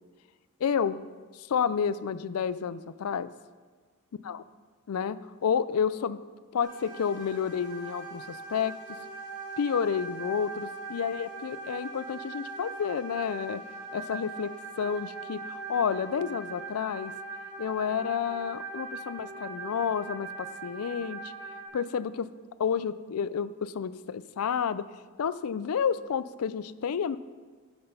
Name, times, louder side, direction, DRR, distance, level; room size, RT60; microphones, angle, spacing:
voice 1, 0.6-1.0 1.3-3.3 4.2-4.4 4.9-6.2 6.5-8.7 9.6-13.6 13.9-17.1 17.6-21.3 21.7-22.3 22.6-24.9 25.2-27.2, left 7 dB, 80° left, 15 dB, 0.4 m, -30 dB
sound 1, 6.6-21.7, right 4 dB, 40° right, 3.3 m, -41 dB
14.0 x 6.1 x 5.5 m, 1.5 s
head